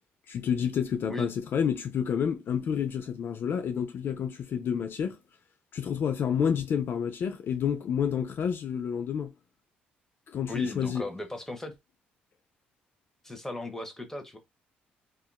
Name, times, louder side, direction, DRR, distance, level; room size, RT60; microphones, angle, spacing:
voice 1, 0.3-5.2 5.7-9.3 10.3-11.0, left 7 dB, 55° left, 0.4 m, -29 dB
voice 2, 10.5-11.7 13.2-14.4, left 1 dB, 10° left, 1.0 m, -37 dB
2.7 x 2.5 x 2.2 m
supercardioid pair, 60°, 4 cm